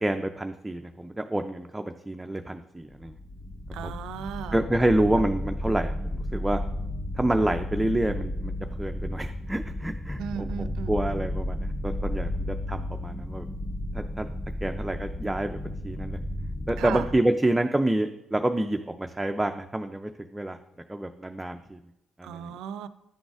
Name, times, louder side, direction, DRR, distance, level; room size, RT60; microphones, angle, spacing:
voice 1, 0.0-3.2 3.8-3.9 4.5-6.6 7.2-8.5 8.8-12.3 12.7-13.5 13.9-14.3 14.6-16.2 16.7-20.6 20.9-21.8 22.2-22.5, right 1 dB, 10° right, 6 dB, 0.3 m, -28 dB
sound 1, 2.8-17.2, left 1 dB, 10° left, 0.8 m, -33 dB
voice 2, 3.7-4.6 10.2-11.3 16.8-17.1 22.2-22.9, right 8 dB, 90° right, 13 dB, 0.3 m, -35 dB
10.5 x 3.9 x 2.4 m, 0.89 s
cardioid pair, 90°, 0 cm